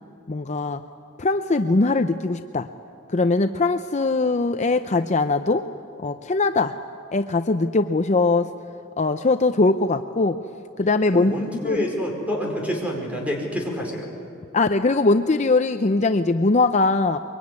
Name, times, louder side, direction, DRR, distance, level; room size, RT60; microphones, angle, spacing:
voice 1, 0.3-0.8 1.2-2.7 3.1-5.6 6.0-6.8 7.1-8.5 9.0-10.4 10.8-11.3 11.6-11.8 14.5-17.2, left 3 dB, 35° left, 8 dB, 0.6 m, -21 dB
voice 2, 11.1-14.1, equal, 5° right, 0 dB, 4.9 m, -27 dB
23.5 x 23.0 x 9.6 m, 2.5 s
head